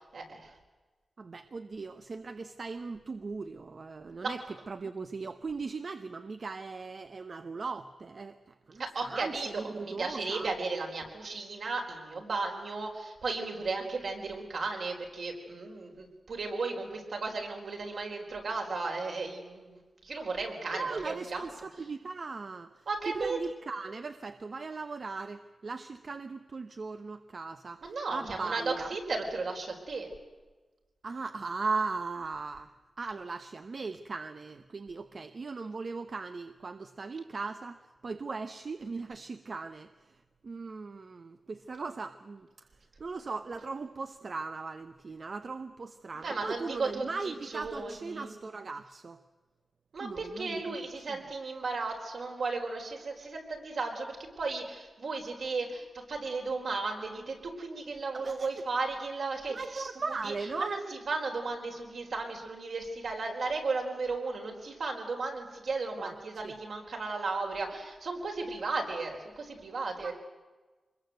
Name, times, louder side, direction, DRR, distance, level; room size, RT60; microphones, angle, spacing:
voice 1, 0.1-0.5 4.2-4.3 8.8-21.4 22.9-23.4 27.8-30.1 46.2-48.3 49.9-59.9 60.2-60.3 60.6-60.8 61.1-70.1, right 3 dB, 70° right, 2 dB, 4.5 m, -35 dB
voice 2, 1.2-10.5 20.7-28.9 31.0-49.2 50.0-51.2 58.1-58.6 59.5-60.8 66.0-66.2 66.4-66.5 70.0-70.1, right 4 dB, 45° right, 9 dB, 0.8 m, -38 dB
25.5 x 21.5 x 7.9 m, 1.3 s
wide cardioid pair, 160°, 0 cm